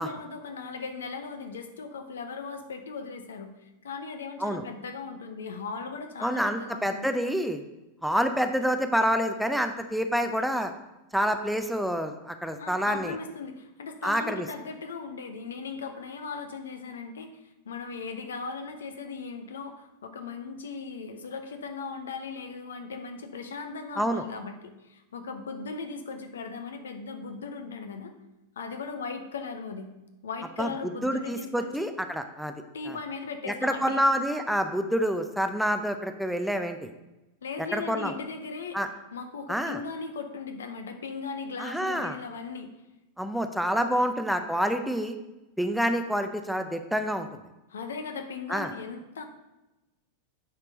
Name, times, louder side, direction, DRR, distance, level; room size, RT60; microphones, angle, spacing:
voice 1, 0.0-7.1 12.6-28.1 28.6-29.9 30.2-31.9 32.7-34.2 37.4-38.8 39.1-42.7 43.8-44.0 47.7-49.2, left 4 dB, 65° left, 7 dB, 0.8 m, -38 dB
voice 2, 6.2-7.6 8.0-10.7 11.1-13.2 14.0-14.5 24.0-24.2 30.6-30.7 31.0-32.5 32.9-33.0 33.5-36.9 37.7-38.1 38.7-38.9 39.5-39.8 41.6-42.2 43.2-45.2 45.6-47.3 48.5-48.7, equal, ahead, 7 dB, 0.5 m, -27 dB
8.8 x 4.5 x 5.1 m, 1.0 s
figure-of-eight pair, 90°, 0 cm